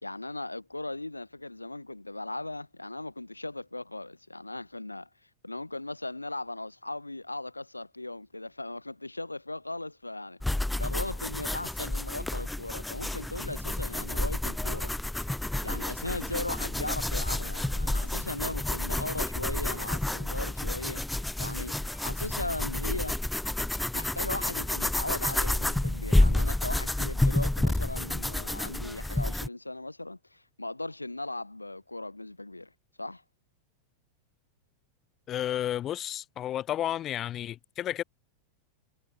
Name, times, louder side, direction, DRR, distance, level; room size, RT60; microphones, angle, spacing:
voice 1, 0.0-14.9 15.6-21.0 21.4-23.2 23.9-32.7 33.0-33.2, left 2 dB, 85° left, 2.2 m, -38 dB
sound 1, 10.4-29.5, left 1 dB, 5° left, 1.0 m, -30 dB
voice 2, 35.3-38.0, left 11 dB, 30° left, 3.8 m, -32 dB
figure-of-eight pair, 90°, 0 cm